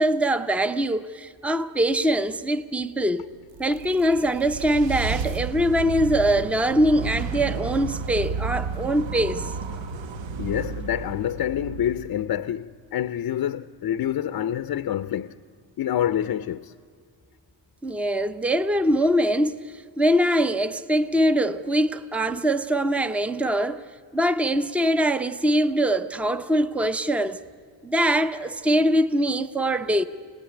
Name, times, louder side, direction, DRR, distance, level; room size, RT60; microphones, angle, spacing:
voice 1, 0.0-3.2 3.6-9.5 17.8-19.6 20.0-23.8 24.1-27.4 27.8-30.0, equal, 5° right, 0.5 m, -23 dB
sound 1, 3.3-12.6, right 5 dB, 85° right, 1.2 m, -32 dB
voice 2, 10.4-15.4 15.8-16.7, left 10 dB, 50° left, 0.6 m, -27 dB
26.5 x 19.0 x 9.9 m
wide cardioid pair, 180°, 45 cm